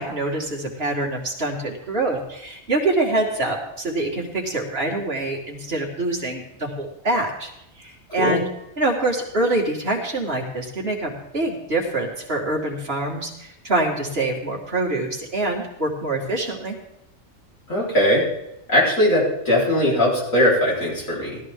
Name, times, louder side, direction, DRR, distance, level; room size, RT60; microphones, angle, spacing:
voice 1, 0.0-7.5 7.8-8.5 8.8-16.8, right 2 dB, 50° right, 0 dB, 2.3 m, -25 dB
voice 2, 17.7-18.3 18.7-21.4, left 1 dB, 80° left, -6 dB, 4.7 m, -19 dB
16.5 x 13.0 x 3.7 m, 0.87 s
omnidirectional pair, 1.4 m